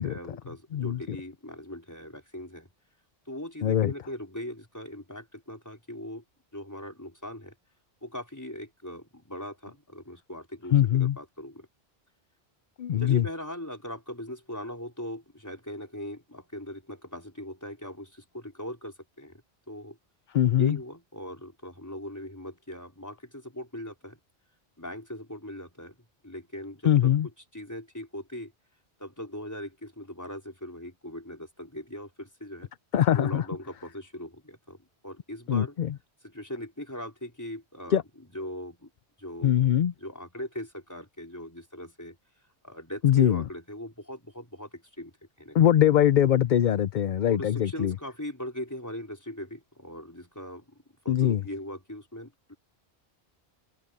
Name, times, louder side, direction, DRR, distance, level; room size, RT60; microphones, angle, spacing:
voice 1, 0.0-2.7 3.3-6.2 6.5-7.5 8.0-11.7 13.0-19.4 19.7-20.0 20.6-24.2 24.8-26.0 26.2-27.1 27.5-28.5 29.0-32.7 33.1-35.8 36.2-38.9 39.2-39.5 40.0-42.2 42.6-45.1 45.4-45.6 47.3-50.7 51.0-52.5, left 1 dB, 15° left, 4.3 m, -40 dB
voice 2, 3.6-3.9 10.7-11.2 12.8-13.2 20.3-20.8 26.8-27.3 32.9-33.4 35.5-35.9 37.9-38.0 39.4-39.9 43.0-43.4 45.5-47.9 51.1-51.4, left 10 dB, 55° left, 0.6 m, -22 dB
omnidirectional pair, 1.1 m